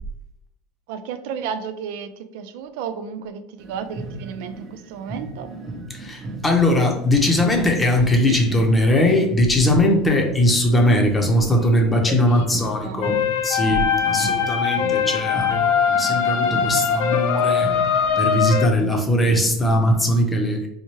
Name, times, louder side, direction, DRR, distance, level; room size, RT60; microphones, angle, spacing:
voice 1, 0.9-5.5 8.3-8.4 12.1-12.5 12.8-13.1, right 7 dB, 75° right, 9 dB, 0.3 m, -32 dB
sound 1, 3.6-19.9, right 3 dB, 30° right, 0.7 m, -35 dB
voice 2, 5.9-13.2 13.4-17.7 18.2-20.7, left 1 dB, 15° left, 2 dB, 0.7 m, -20 dB
sound 2, 13.0-18.7, left 7 dB, 65° left, 0.4 m, -21 dB
4.3 x 2.2 x 3.0 m, 0.81 s
supercardioid pair, 130°, 0 cm